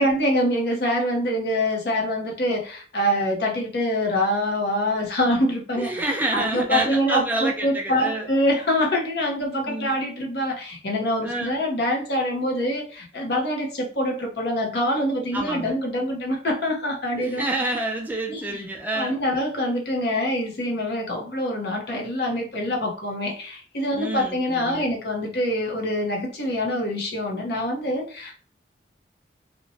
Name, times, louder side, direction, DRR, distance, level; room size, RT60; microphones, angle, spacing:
voice 1, 0.0-2.6 2.9-5.9 6.3-10.5 10.8-12.8 13.2-13.7 14.0-17.4 18.3-18.4 18.9-23.3 23.8-28.0, equal, 65° left, 0 dB, 0.7 m, -24 dB
voice 2, 5.8-8.3 9.7-9.9 11.2-11.5 15.3-15.8 17.2-19.2 23.9-24.9, right 2 dB, 10° right, 0 dB, 0.4 m, -28 dB
2.9 x 2.1 x 2.6 m, 0.41 s
head